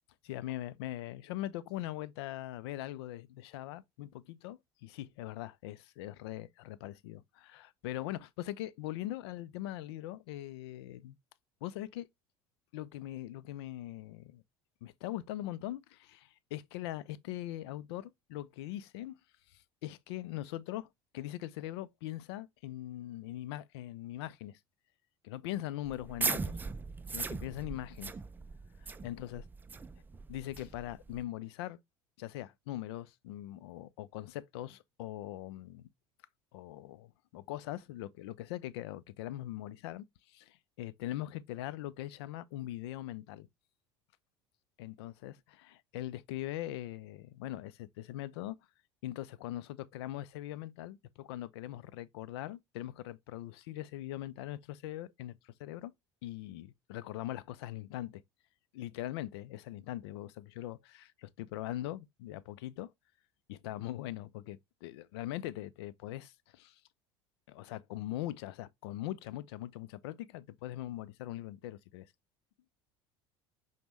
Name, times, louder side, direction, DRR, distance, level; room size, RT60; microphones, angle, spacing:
voice 1, 0.2-11.2 11.6-12.1 12.7-14.4 14.8-19.1 19.5-20.9 21.1-24.6 25.2-26.6 27.1-28.1 28.8-29.4 30.3-31.8 32.2-35.9 36.5-43.5 44.8-48.6 49.0-55.9 56.2-58.2 58.7-62.9 63.5-66.8 67.5-72.1, left 14 dB, 75° left, 0.4 m, -41 dB
sound 1, 25.8-31.2, right 4 dB, 15° right, 0.3 m, -39 dB
5.1 x 2.1 x 3.0 m
hypercardioid pair, 80°, 14 cm